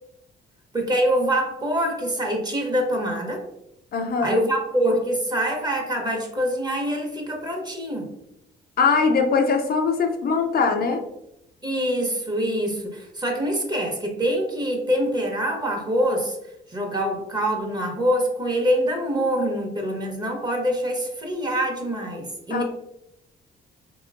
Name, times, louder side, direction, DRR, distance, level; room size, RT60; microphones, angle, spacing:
voice 1, 0.7-3.4 4.2-8.1 11.6-16.4 16.7-22.6, equal, 20° right, 1 dB, 0.9 m, -25 dB
voice 2, 3.9-4.4 8.8-11.0 22.5-22.6, left 4 dB, 50° left, 3 dB, 0.5 m, -21 dB
4.0 x 2.9 x 2.4 m, 0.83 s
cardioid pair, 90°, 20 cm